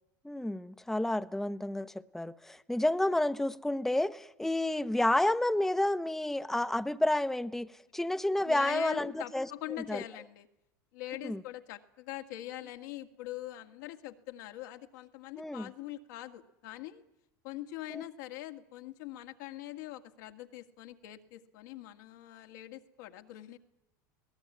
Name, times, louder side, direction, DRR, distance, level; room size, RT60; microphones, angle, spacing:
voice 1, 0.2-7.7 7.9-9.5 9.9-10.0 11.2-11.4 15.4-15.7 17.9-18.0, left 1 dB, 5° left, 11 dB, 0.9 m, -30 dB
voice 2, 8.5-10.5 10.9-17.0 17.4-23.6, left 15 dB, 70° left, 6 dB, 1.9 m, -43 dB
21.5 x 17.5 x 9.7 m, 0.87 s
hypercardioid pair, 95°, 10 cm